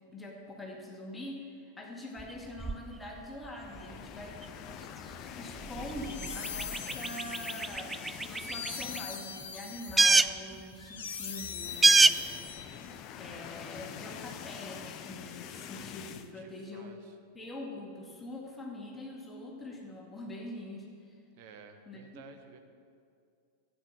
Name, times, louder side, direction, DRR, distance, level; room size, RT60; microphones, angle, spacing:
voice 1, 0.1-4.4 5.2-12.2 13.2-17.0 17.3-21.2 21.9-22.2, left 1 dB, 10° left, -1 dB, 2.3 m, -44 dB
sound 1, 2.2-9.5 9.8-12.8, right 3 dB, 10° right, 0.3 m, -29 dB
sound 2, 3.5-9.3 9.7-9.9 10.1-10.2 11.3-16.3, left 9 dB, 40° left, 0.7 m, -45 dB
sound 3, 5.8-13.0, left 7 dB, 60° left, 1.2 m, -42 dB
voice 2, 16.2-17.1 21.4-22.6, right 6 dB, 50° right, 6 dB, 1.3 m, -53 dB
12.5 x 9.0 x 7.7 m, 2.4 s
figure-of-eight pair, 90°, 0 cm